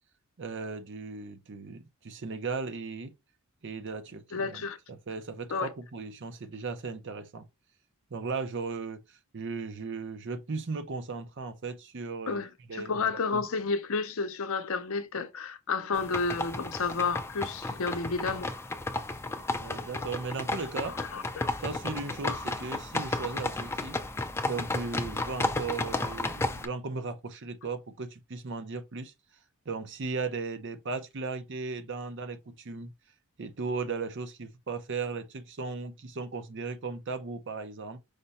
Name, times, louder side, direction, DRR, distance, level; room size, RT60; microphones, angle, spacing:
voice 1, 0.4-3.1 3.6-7.4 8.1-12.4 12.7-13.0 13.3-13.5 19.6-21.0 21.6-24.0 24.5-29.1 29.7-32.9 33.4-38.0, right 4 dB, 55° right, 0.6 m, -36 dB
voice 2, 4.3-4.8 5.5-5.7 12.3-18.5 20.8-21.5, left 4 dB, 65° left, 0.6 m, -31 dB
sound 1, 15.9-26.7, left 2 dB, 10° left, 0.4 m, -33 dB
5.1 x 2.2 x 4.1 m
head